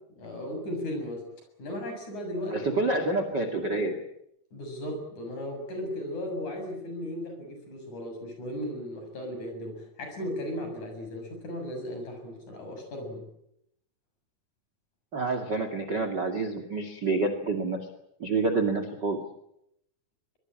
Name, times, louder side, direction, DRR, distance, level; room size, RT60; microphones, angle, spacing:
voice 1, 0.2-1.3 1.6-2.9 4.5-13.3, left 1 dB, 45° left, 5 dB, 8.1 m, -36 dB
voice 2, 2.5-4.0 15.1-17.8 18.2-19.2, right 3 dB, 35° right, 8 dB, 2.2 m, -28 dB
24.5 x 21.5 x 8.9 m, 0.77 s
omnidirectional pair, 4.9 m